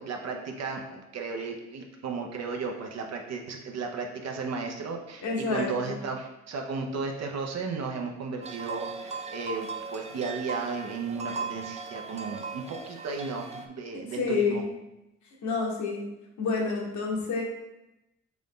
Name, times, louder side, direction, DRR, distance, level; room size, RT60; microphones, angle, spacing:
voice 1, 0.0-14.6, right 4 dB, 60° right, 2 dB, 0.8 m, -34 dB
voice 2, 5.2-6.0 13.9-14.7 15.4-16.1 16.4-17.4, left 4 dB, 70° left, -1 dB, 1.2 m, -29 dB
sound 1, 8.4-13.7, right 4 dB, 20° right, 0.4 m, -38 dB
3.9 x 3.6 x 3.7 m, 0.92 s
cardioid pair, 90°, 30 cm